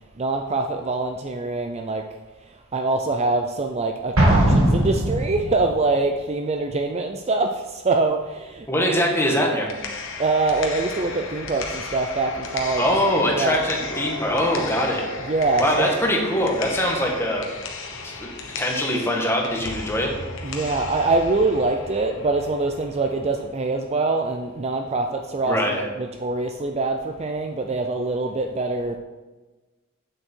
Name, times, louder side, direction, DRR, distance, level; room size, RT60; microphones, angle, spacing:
voice 1, 0.2-2.0 2.5-8.7 10.2-12.8 13.4-13.6 15.2-15.9 20.4-29.0, right 3 dB, 30° right, 5 dB, 0.5 m, -24 dB
Explosion, 4.2-5.8, right 1 dB, 80° right, 2.3 m, -19 dB
voice 2, 8.7-9.7 12.8-15.0 15.6-17.5 18.0-18.3 18.6-20.1 25.5-25.9, equal, 10° left, 0 dB, 1.5 m, -22 dB
sound 1, 9.5-23.5, left 3 dB, 65° left, 1.3 m, -35 dB
8.2 x 7.2 x 4.5 m, 1.2 s
head